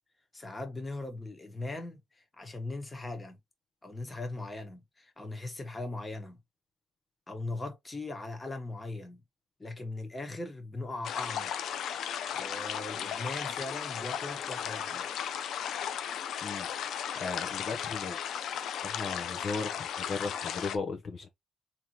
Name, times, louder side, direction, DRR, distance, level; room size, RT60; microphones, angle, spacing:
voice 1, 0.3-3.4 3.8-6.4 7.3-9.2 9.6-11.8 12.3-15.0, left 2 dB, 20° left, 1.4 m, -39 dB
sound 1, 11.0-20.8, left 8 dB, 75° left, 0.5 m, -35 dB
voice 2, 17.1-18.2 18.8-21.3, left 4 dB, 50° left, 0.8 m, -36 dB
3.5 x 3.0 x 3.0 m
cardioid pair, 90°, 0 cm